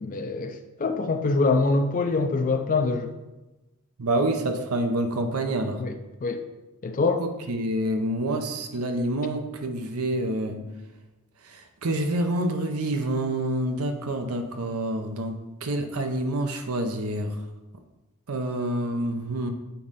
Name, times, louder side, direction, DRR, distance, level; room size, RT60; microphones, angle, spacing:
voice 1, 0.0-3.1 5.8-5.9 6.2-6.4 6.8-7.2, left 3 dB, 35° left, 6 dB, 0.4 m, -24 dB
voice 2, 4.0-5.8 7.2-10.6 11.5-17.4 18.3-19.5, right 1 dB, 75° right, 5 dB, 0.7 m, -27 dB
6.9 x 3.7 x 5.5 m, 1.1 s
head